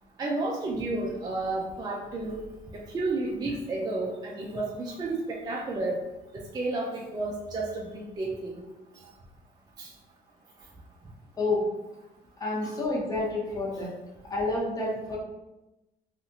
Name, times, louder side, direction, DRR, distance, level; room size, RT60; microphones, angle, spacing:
voice 1, 0.2-2.5 2.7-6.0 6.3-8.6 9.8-9.9 12.6-12.7, right 2 dB, 25° right, -2 dB, 0.4 m, -31 dB
voice 2, 12.4-13.9 14.3-15.2, left 2 dB, 20° left, -5 dB, 0.9 m, -29 dB
2.8 x 2.4 x 2.6 m, 0.98 s
cardioid pair, 110°, 17 cm